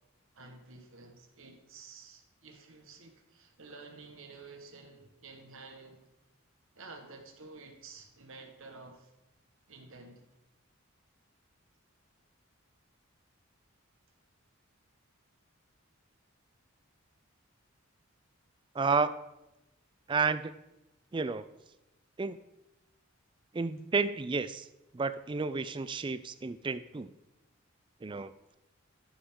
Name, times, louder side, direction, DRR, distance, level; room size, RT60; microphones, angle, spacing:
voice 1, 0.3-6.0 6.7-9.1 9.7-10.2, right 3 dB, 75° right, 4 dB, 1.3 m, -51 dB
voice 2, 18.7-19.1 20.1-20.5 21.1-21.4 22.2-22.4 23.5-24.7 24.9-27.1 28.0-28.3, right 4 dB, 25° right, 13 dB, 0.3 m, -31 dB
12.5 x 6.9 x 3.7 m, 0.92 s
head